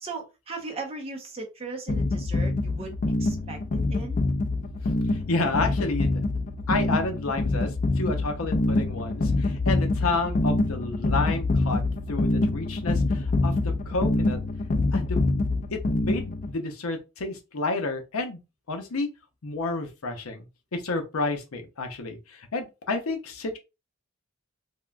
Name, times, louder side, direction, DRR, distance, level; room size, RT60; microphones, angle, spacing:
voice 1, 0.0-4.2, right 3 dB, 30° right, 0.7 m, -38 dB
sound 1, 1.9-16.5, left 2 dB, 35° left, 0.4 m, -26 dB
voice 2, 5.1-6.2 6.7-14.4 14.9-15.4 15.7-18.4 18.7-19.1 19.4-20.5 20.7-23.6, left 3 dB, 80° left, 0.7 m, -30 dB
3.5 x 2.4 x 2.2 m
head